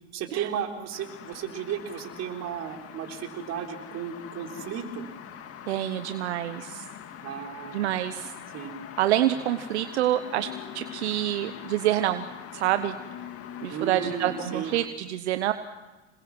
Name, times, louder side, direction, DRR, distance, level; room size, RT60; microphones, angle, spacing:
voice 1, 0.1-5.1 7.2-7.9 8.5-8.7 13.7-14.7, right 8 dB, 50° right, 3 dB, 4.1 m, -34 dB
sound 1, 0.9-14.9, left 8 dB, 45° left, 2.2 m, -43 dB
voice 2, 5.7-6.8 7.7-8.3 9.0-12.2 12.5-12.9 13.6-15.5, right 13 dB, 85° right, 10 dB, 1.1 m, -27 dB
27.0 x 21.5 x 6.2 m, 1.1 s
hypercardioid pair, 90°, 33 cm